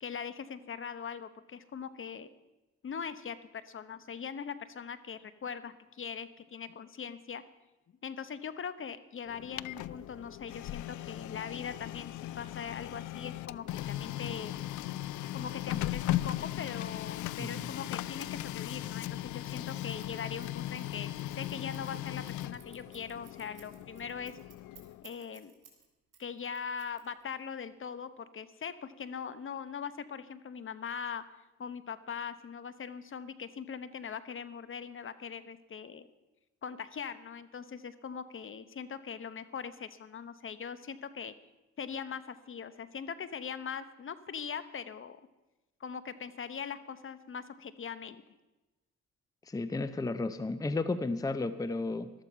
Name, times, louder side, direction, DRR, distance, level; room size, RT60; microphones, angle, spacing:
voice 1, 0.0-2.3 2.8-7.4 8.0-14.6 15.3-24.3 25.0-25.5 26.2-31.2 31.6-36.1 36.6-41.3 41.8-45.2 45.8-48.2, left 6 dB, 45° left, 14 dB, 0.9 m, -41 dB
Printer, 9.3-25.1, left 14 dB, 75° left, 0.5 m, -38 dB
voice 2, 17.4-17.7 49.5-52.1, left 3 dB, 10° left, 12 dB, 0.7 m, -33 dB
Scissors, 19.6-25.8 26.1-27.4, right 8 dB, 55° right, 3.9 m, -58 dB
13.5 x 12.5 x 5.6 m, 1.1 s
cardioid pair, 90°, 30 cm